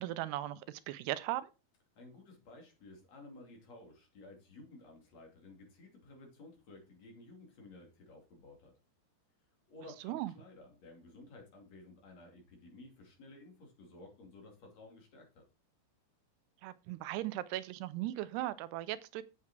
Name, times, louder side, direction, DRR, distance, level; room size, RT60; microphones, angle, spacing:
voice 1, 0.0-1.5 10.0-10.3 16.6-19.2, right 15 dB, 90° right, 2.8 m, -38 dB
voice 2, 2.0-8.7 9.7-15.4, left 2 dB, 45° left, 3.6 m, -54 dB
8.5 x 7.5 x 4.6 m
omnidirectional pair, 4.6 m